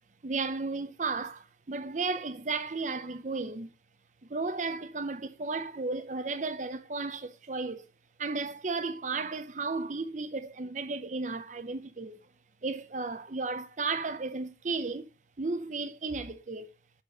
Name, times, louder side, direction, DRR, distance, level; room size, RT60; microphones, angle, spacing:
voice 1, 0.2-3.7 4.3-7.9 8.2-12.2 12.6-15.1 15.4-16.7, right 3 dB, 40° right, 0.6 m, -34 dB
8.0 x 4.2 x 6.5 m
head